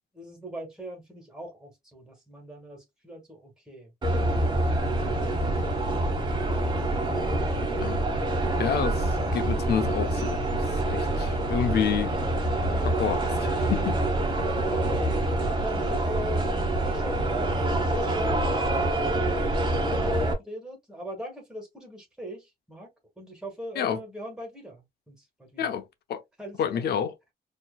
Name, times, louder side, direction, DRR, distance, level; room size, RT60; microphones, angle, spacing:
voice 1, 0.1-3.9 14.7-15.2 15.5-19.4 19.9-22.9 23.2-25.7 26.4-26.9, right 1 dB, 5° right, 1.6 m, -40 dB
sound 1, 4.0-20.3, right 1 dB, 30° right, 1.2 m, -26 dB
voice 2, 8.6-12.2 12.8-14.0 23.8-24.0 25.6-25.8 26.1-26.2 26.6-27.1, left 8 dB, 85° left, 0.7 m, -29 dB
4.4 x 2.9 x 2.2 m
wide cardioid pair, 170°, 16 cm